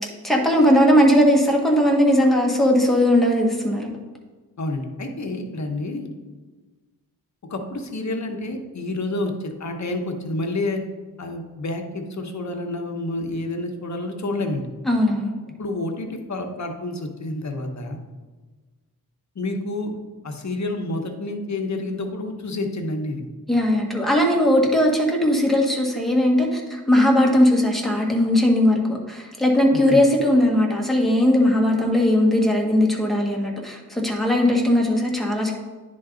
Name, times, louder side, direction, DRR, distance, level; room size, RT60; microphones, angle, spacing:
voice 1, 0.2-3.9 14.9-15.3 23.5-35.5, left 1 dB, ahead, -1 dB, 1.4 m, -19 dB
voice 2, 4.6-6.1 7.5-10.8 11.2-14.7 15.6-18.0 19.3-19.9 20.2-23.2 29.7-30.0, left 2 dB, 50° left, 4 dB, 1.0 m, -29 dB
10.0 x 3.9 x 3.8 m, 1.3 s
wide cardioid pair, 80°, 37 cm